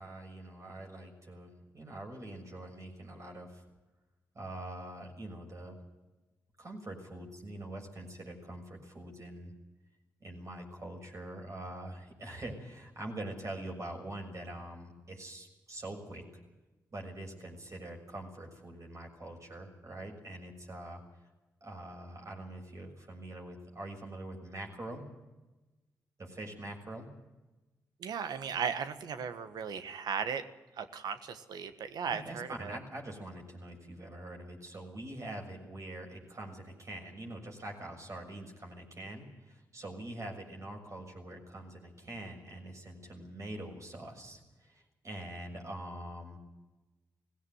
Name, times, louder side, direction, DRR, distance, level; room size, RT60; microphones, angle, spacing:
voice 1, 0.0-3.6 4.3-5.8 6.6-9.5 10.2-16.2 16.9-21.0 21.6-25.0 26.2-27.1 32.1-46.4, right 1 dB, 45° right, 1 dB, 6.6 m, -44 dB
voice 2, 28.0-30.4 30.8-32.8, right 6 dB, 75° right, 10 dB, 1.5 m, -36 dB
17.5 x 16.5 x 9.4 m, 1.1 s
supercardioid pair, 45°, 7 cm